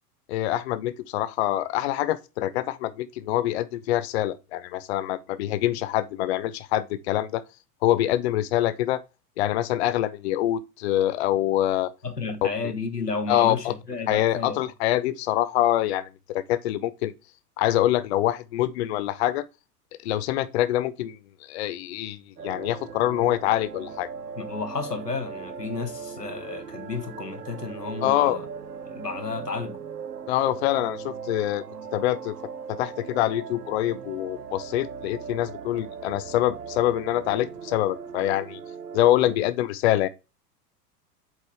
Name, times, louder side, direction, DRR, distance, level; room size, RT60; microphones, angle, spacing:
voice 1, 0.3-7.4 7.8-9.0 9.4-11.9 13.3-13.7 14.1-17.1 17.6-19.4 20.0-21.2 21.4-22.2 22.4-24.1 28.0-28.4 30.3-31.6 31.9-32.3 32.7-38.6 38.9-40.1, left 13 dB, 45° left, 0.5 m, -25 dB
voice 2, 12.0-14.7 24.3-28.5 28.9-29.8, left 4 dB, 90° left, 1.4 m, -32 dB
sound 1, 22.4-39.4, right 6 dB, 80° right, 0.9 m, -39 dB
7.8 x 4.9 x 3.4 m
figure-of-eight pair, 95°, 47 cm